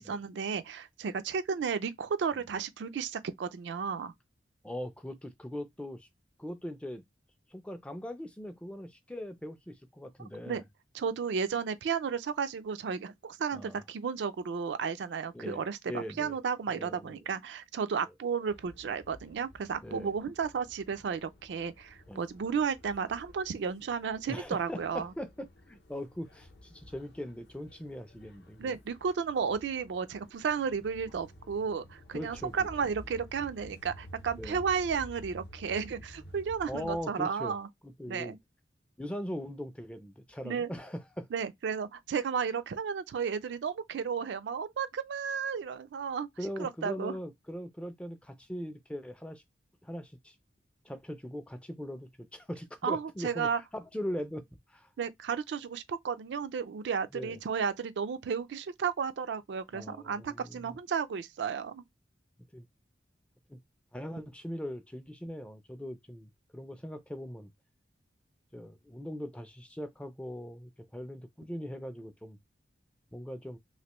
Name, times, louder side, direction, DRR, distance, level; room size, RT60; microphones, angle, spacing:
voice 1, 0.0-4.1 10.5-10.6 10.9-25.1 28.6-37.7 38.1-38.4 40.4-40.7 41.3-46.3 46.6-47.2 52.8-53.6 55.0-61.8, right 6 dB, 75° right, 0.4 m, -33 dB
voice 2, 4.6-6.1 6.4-7.0 7.5-10.6 13.5-13.8 15.3-16.4 16.7-17.2 19.8-20.1 22.1-22.2 24.3-28.8 32.1-32.7 34.3-34.6 36.7-37.6 37.8-38.3 39.0-41.3 46.4-49.4 49.8-50.3 50.8-54.9 57.1-57.4 59.7-60.8 62.5-62.7 63.5-63.6 63.9-67.5 68.5-72.4 73.1-73.6, equal, 5° left, 0.3 m, -40 dB
sound 1, 18.5-37.1, left 1 dB, 65° left, 0.6 m, -52 dB
3.1 x 2.5 x 3.0 m
head